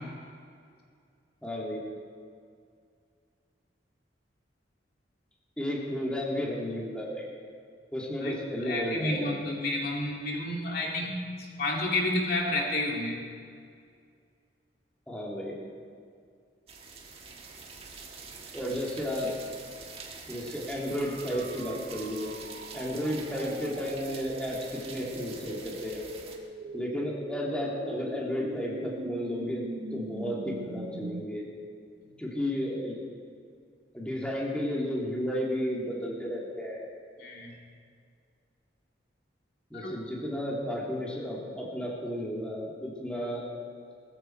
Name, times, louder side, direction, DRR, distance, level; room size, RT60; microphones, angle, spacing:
voice 1, 1.4-1.8 5.6-7.3 7.9-9.4 15.1-15.6 18.5-19.3 20.3-22.3 22.7-26.0 26.7-31.5 32.2-33.0 33.9-36.9 39.7-43.4, equal, 5° left, -4 dB, 2.7 m, -33 dB
voice 2, 8.2-11.3 11.6-13.2 37.2-37.6 39.7-40.0, left 1 dB, 55° left, -1 dB, 2.6 m, -30 dB
sound 1, 16.7-26.4, right 4 dB, 35° right, 1.7 m, -45 dB
sound 2, 20.9-31.3, right 2 dB, 60° right, 0.8 m, -42 dB
21.0 x 14.5 x 4.6 m, 2.2 s
head